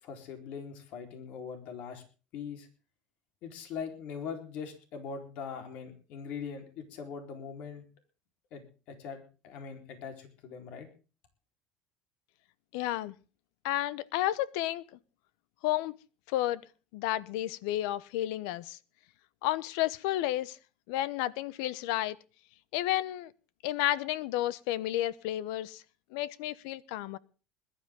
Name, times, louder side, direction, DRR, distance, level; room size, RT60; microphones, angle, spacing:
voice 1, 0.0-2.0 2.3-2.7 3.4-7.9 8.5-10.9, left 6 dB, 65° left, 4.2 m, -41 dB
voice 2, 12.7-13.1 13.6-15.0 15.6-15.9 16.3-16.6 16.9-18.8 19.4-20.6 20.9-22.2 22.7-23.3 23.6-25.8 26.1-27.2, left 14 dB, 80° left, 1.0 m, -31 dB
21.0 x 12.0 x 3.7 m
supercardioid pair, 110°, 3 cm